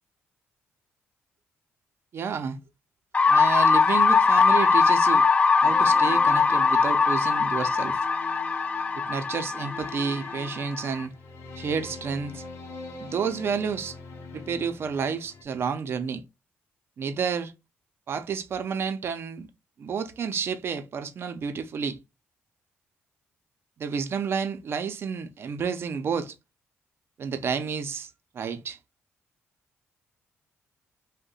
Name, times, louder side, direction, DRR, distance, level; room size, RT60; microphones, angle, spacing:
voice 1, 2.1-2.6 3.3-5.2 5.6-8.1 8.9-11.1 11.5-12.4 13.0-14.0 14.3-16.2 17.0-17.5 18.1-19.5 19.8-22.0 23.8-26.3 27.2-28.8, right 6 dB, 55° right, 0.5 m, -30 dB
sound 1, 3.1-11.0, left 4 dB, 25° left, 0.4 m, -21 dB
sound 2, 5.6-15.4, left 4 dB, 70° left, 0.7 m, -44 dB
2.7 x 2.1 x 3.9 m
cardioid pair, 80°, 5 cm